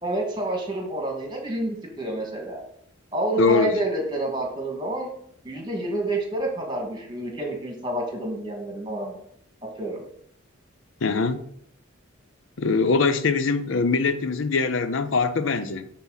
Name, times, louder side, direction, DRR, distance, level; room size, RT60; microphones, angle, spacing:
voice 1, 0.0-2.6 3.1-5.1 5.4-9.2 9.8-10.0, right 1 dB, 20° right, 1.9 m, -28 dB
voice 2, 3.4-3.8 11.0-11.4 12.6-15.9, left 4 dB, 65° left, 0.6 m, -22 dB
11.5 x 4.2 x 4.0 m
head